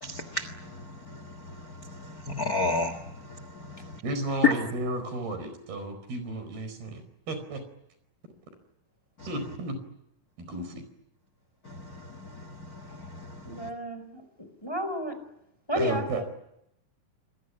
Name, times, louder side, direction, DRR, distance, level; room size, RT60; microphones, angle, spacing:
voice 1, 0.0-4.0 4.4-4.7 9.2-9.3 11.6-13.7, left 4 dB, 50° left, 12 dB, 1.0 m, -32 dB
voice 2, 4.0-7.6 9.3-9.8 10.4-10.8 15.8-16.2, right 2 dB, 90° right, 10 dB, 6.5 m, -33 dB
voice 3, 13.4-14.2 14.6-15.1 15.7-16.2, left 1 dB, 5° left, 9 dB, 4.1 m, -31 dB
27.0 x 21.5 x 9.9 m, 0.81 s
omnidirectional pair, 4.3 m